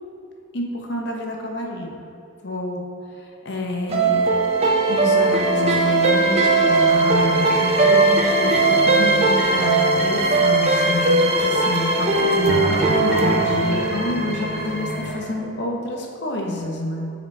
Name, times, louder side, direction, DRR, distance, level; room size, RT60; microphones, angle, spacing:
voice 1, 0.5-2.0 2.4-2.8 3.1-4.3 4.9-17.1, left 2 dB, 55° left, 0 dB, 0.8 m, -28 dB
sound 1, 3.9-15.1, right 3 dB, 30° right, 0.4 m, -19 dB
sound 2, 6.8-15.3, left 1 dB, 5° right, 1.4 m, -33 dB
7.2 x 4.1 x 3.2 m, 2.4 s
head